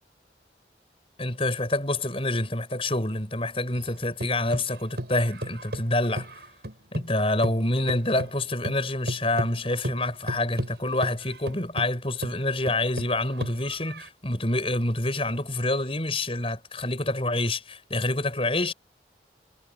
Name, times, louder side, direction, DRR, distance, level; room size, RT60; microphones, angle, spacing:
voice 1, 1.2-6.3 6.9-18.7, left 2 dB, 30° left, 6.3 m, -27 dB
sound 1, 3.8-7.2 7.4-14.1, right 1 dB, 65° right, 6.0 m, -35 dB
head